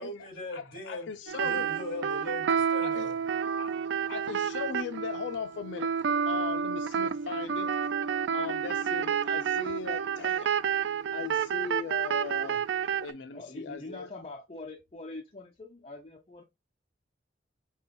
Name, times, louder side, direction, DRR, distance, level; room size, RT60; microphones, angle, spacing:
voice 1, 0.0-1.1 1.4-3.2, left 1 dB, 50° left, 2.4 m, -39 dB
voice 2, 0.5-1.7 2.8-3.1 3.5-3.8 4.1-5.9 6.2-7.7 8.3-10.5 11.1-12.6 13.0-14.1, left 6 dB, 75° left, 0.3 m, -38 dB
sound 1, 1.3-13.1, right 7 dB, 70° right, 0.3 m, -30 dB
voice 3, 13.3-16.4, left 2 dB, 30° left, 0.6 m, -43 dB
5.3 x 2.2 x 3.6 m
head